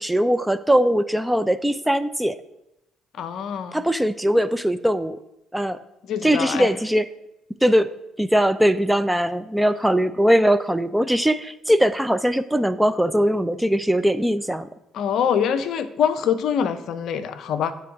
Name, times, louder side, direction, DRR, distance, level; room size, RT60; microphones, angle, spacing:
voice 1, 0.0-2.4 3.7-5.2 5.5-5.8 6.2-7.1 7.6-7.9 8.2-14.7, equal, 5° right, 13 dB, 0.4 m, -20 dB
voice 2, 3.1-3.8 6.1-6.7 14.9-17.7, left 8 dB, 60° left, 12 dB, 0.5 m, -24 dB
9.3 x 3.4 x 4.7 m, 0.87 s
hypercardioid pair, 50°, 0 cm